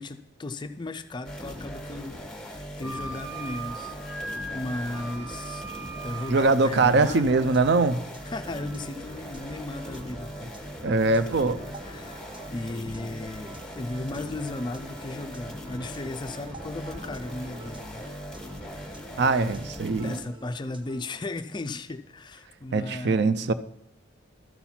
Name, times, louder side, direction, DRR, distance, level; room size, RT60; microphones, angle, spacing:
voice 1, 0.0-4.0 4.5-5.6 6.0-7.3 8.2-10.5 11.8-12.2 12.5-18.0 18.7-18.9 19.4-23.5, left 2 dB, 20° left, 10 dB, 0.3 m, -36 dB
sound 1, 1.2-20.2, equal, 5° left, 1.4 m, -40 dB
Wind instrument woodwind instrument, 2.8-6.6, right 2 dB, 80° right, 1.2 m, -38 dB
sound 2, 4.3-21.2, right 2 dB, 25° right, 0.7 m, -49 dB
voice 2, 6.3-8.0 10.8-11.6 19.2-20.2 22.7-23.5, right 3 dB, 55° right, 13 dB, 0.4 m, -22 dB
12.5 x 4.3 x 5.7 m, 0.78 s
head